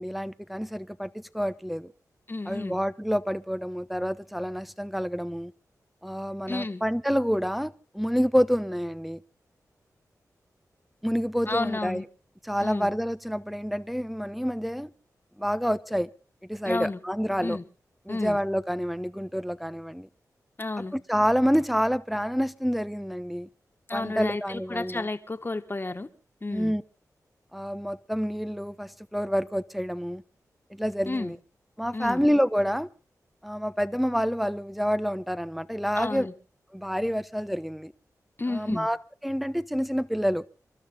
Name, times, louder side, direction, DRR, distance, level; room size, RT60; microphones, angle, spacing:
voice 1, 0.0-1.9 2.5-5.5 6.0-9.2 11.0-12.0 12.5-14.9 15.4-16.1 16.5-17.6 18.1-20.1 20.9-23.5 23.9-25.1 26.5-26.8 27.5-30.2 30.7-31.4 31.8-32.9 33.4-36.3 36.7-37.9 38.5-39.0 39.2-40.4, equal, ahead, 0.9 m, -28 dB
voice 2, 2.3-2.8 6.5-6.8 11.5-12.0 12.6-12.9 16.7-17.0 17.4-17.6 18.1-18.4 20.6-20.9 23.9-26.1 26.4-26.7 31.1-31.3 31.9-32.2 36.0-36.3 38.4-38.9, left 2 dB, 35° left, 1.8 m, -31 dB
28.0 x 12.5 x 3.8 m
cardioid pair, 55°, 6 cm